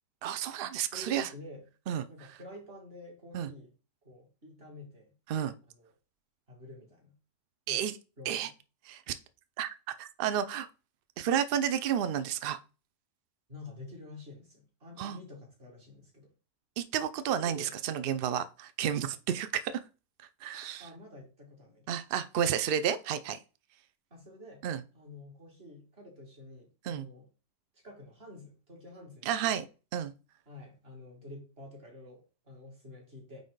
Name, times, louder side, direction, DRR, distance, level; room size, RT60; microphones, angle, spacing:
voice 1, 0.2-1.3 1.9-2.0 3.3-3.5 5.3-5.5 7.7-7.9 8.3-8.5 8.9-9.1 9.6-9.7 10.0-10.7 11.2-12.6 15.0-15.2 16.8-19.8 20.4-20.9 21.9-23.4 24.6-24.8 26.8-27.1 29.2-29.6 29.9-30.1, right 9 dB, 80° right, 0.5 m, -31 dB
voice 2, 0.9-1.6 2.1-3.7 4.0-5.1 5.7-5.9 6.5-7.2 7.7-7.9 8.2-8.5 13.5-16.3 17.4-17.8 20.8-21.9 24.1-24.6 24.9-27.3 27.7-29.6 30.5-33.4, left 2 dB, 40° right, 2.4 m, -49 dB
8.9 x 3.6 x 3.9 m
omnidirectional pair, 1.6 m